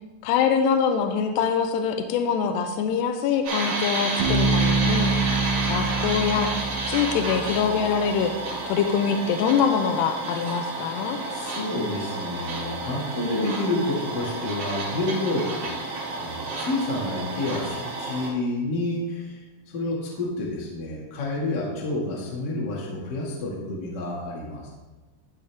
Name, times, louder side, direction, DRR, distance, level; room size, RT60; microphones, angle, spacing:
voice 1, 0.2-5.1 5.7-6.5 6.9-8.3 8.7-11.2, left 7 dB, 85° left, 5 dB, 2.6 m, -24 dB
sound 1, 3.4-18.3, right 2 dB, 60° right, 4.0 m, -31 dB
Bass guitar, 4.2-7.9, right 3 dB, 80° right, 4.1 m, -26 dB
voice 2, 11.3-15.8 16.1-24.7, left 2 dB, 55° left, -4 dB, 1.2 m, -29 dB
13.0 x 5.0 x 3.4 m, 1.2 s
omnidirectional pair, 5.0 m